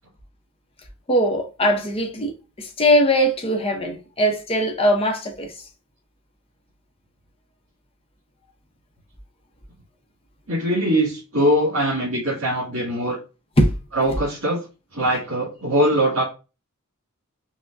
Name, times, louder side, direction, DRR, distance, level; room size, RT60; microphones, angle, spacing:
voice 1, 1.1-2.3 2.6-5.5 13.6-13.7, equal, 25° left, 0.7 m, -20 dB
voice 2, 10.5-13.2 14.0-14.6 14.9-16.2, equal, 65° right, 2.2 m, -21 dB
5.7 x 2.2 x 2.5 m
head